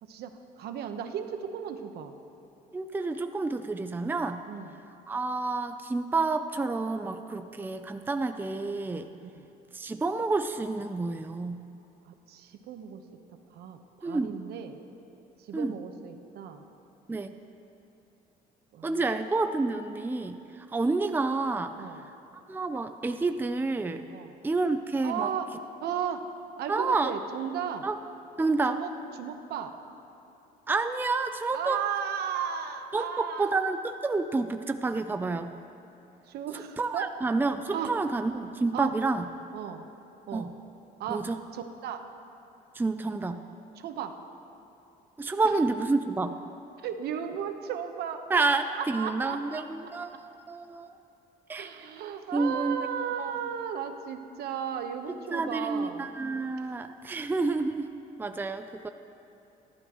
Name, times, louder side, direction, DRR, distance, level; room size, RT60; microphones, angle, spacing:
voice 1, 0.0-2.2 4.5-4.7 9.2-9.5 12.0-13.0 13.5-14.8 15.4-16.6 18.7-19.0 21.8-22.1 24.1-24.4 25.0-25.5 25.8-26.2 26.6-27.9 28.7-28.9 29.2-29.7 31.5-33.6 36.3-37.1 37.7-37.9 38.7-39.0 39.5-39.9 40.3-40.5 41.0-41.3 41.5-42.0 43.8-44.2 45.4-45.5 46.8-48.2 48.7-50.2 51.6-56.1, right 8 dB, 70° right, 6 dB, 1.2 m, -35 dB
voice 2, 2.7-4.4 5.1-9.1 9.7-11.6 14.0-14.3 15.5-15.7 17.1-17.3 18.8-21.8 22.5-24.0 24.4-25.3 26.7-27.1 27.8-28.0 28.4-28.8 30.7-31.8 32.9-35.5 36.8-39.3 40.3-40.5 41.1-41.4 42.7-43.4 45.2-46.3 48.3-50.1 50.5-50.9 51.5-51.8 52.3-52.8 53.2-53.3 55.3-57.9 58.2-58.9, right 3 dB, 10° right, 8 dB, 0.5 m, -29 dB
29.0 x 12.0 x 3.1 m, 2.9 s
cardioid pair, 110°, 17 cm